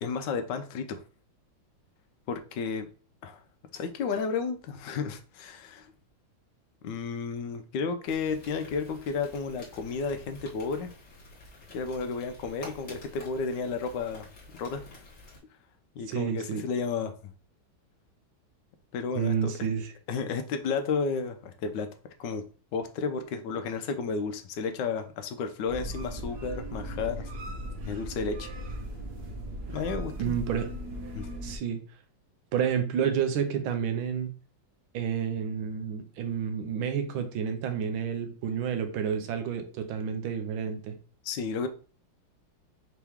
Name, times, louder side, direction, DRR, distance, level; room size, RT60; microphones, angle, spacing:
voice 1, 0.0-1.0 2.3-2.9 3.2-3.4 3.7-5.9 6.8-10.9 11.7-14.3 14.6-14.9 15.9-17.1 18.9-19.5 20.1-21.9 22.2-22.4 22.7-27.3 27.8-28.5 29.7-30.4 31.1-31.3 41.2-41.7, left 5 dB, 75° left, 1.1 m, -32 dB
sound 1, 8.1-15.4, left 2 dB, 35° left, 1.5 m, -49 dB
voice 2, 16.1-16.6 19.1-19.9 30.2-30.7 31.4-31.8 32.5-34.3 34.9-40.9, right 7 dB, 85° right, 1.5 m, -30 dB
sound 2, 25.7-31.6, right 1 dB, 65° right, 1.3 m, -38 dB
4.6 x 3.0 x 3.4 m
omnidirectional pair, 2.2 m